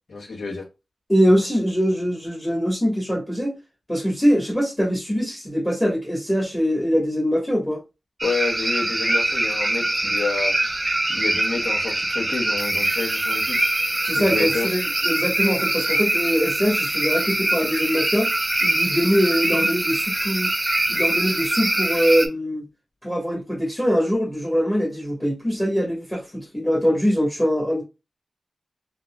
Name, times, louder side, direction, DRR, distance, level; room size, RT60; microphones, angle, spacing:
voice 1, 0.1-0.6 8.2-10.5 11.1-13.6 14.2-14.7, left 4 dB, 80° left, 1.3 m, -29 dB
voice 2, 1.1-3.6 3.9-7.8 14.0-18.3 18.6-20.5 20.9-22.6 23.0-27.8, equal, 10° left, 1.4 m, -22 dB
sound 1, 8.2-22.3, right 1 dB, 25° right, 0.7 m, -23 dB
3.9 x 2.8 x 2.3 m
wide cardioid pair, 85°, 0 cm